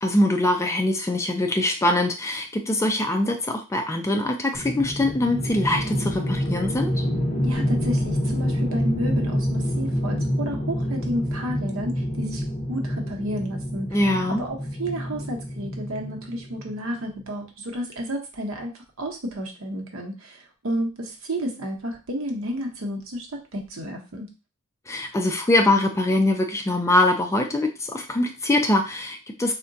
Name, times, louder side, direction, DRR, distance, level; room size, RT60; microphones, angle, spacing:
voice 1, 0.0-7.0 13.9-14.4 24.9-29.5, left 1 dB, 15° left, 4 dB, 0.3 m, -23 dB
sound 1, 4.5-16.8, equal, 35° left, 0.9 m, -27 dB
voice 2, 7.4-12.4 12.7-23.3 23.5-24.3, equal, 70° right, 2 dB, 0.8 m, -31 dB
3.7 x 2.2 x 2.6 m, 0.32 s
head